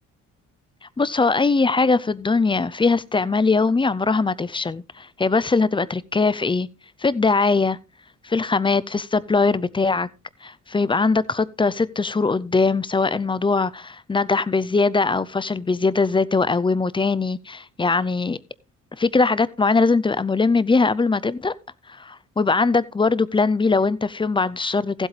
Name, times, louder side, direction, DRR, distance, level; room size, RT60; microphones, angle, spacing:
voice 1, 0.8-6.7 7.0-7.8 8.2-10.1 10.4-18.4 19.0-21.5 21.9-25.1, left 4 dB, 15° left, 0.5 m, -21 dB
15.5 x 8.1 x 3.3 m
cardioid pair, 100°, 31 cm